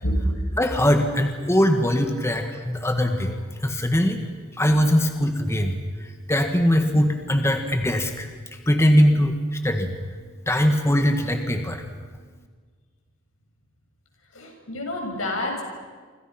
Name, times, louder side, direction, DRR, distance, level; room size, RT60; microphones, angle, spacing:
voice 1, 0.0-0.4 14.3-15.6, equal, 90° left, 1 dB, 7.0 m, -27 dB
voice 2, 0.6-3.3 3.6-4.2 4.5-5.7 6.0-9.9 10.5-11.8, equal, 15° left, 5 dB, 1.7 m, -21 dB
28.5 x 26.5 x 6.0 m, 1.5 s
head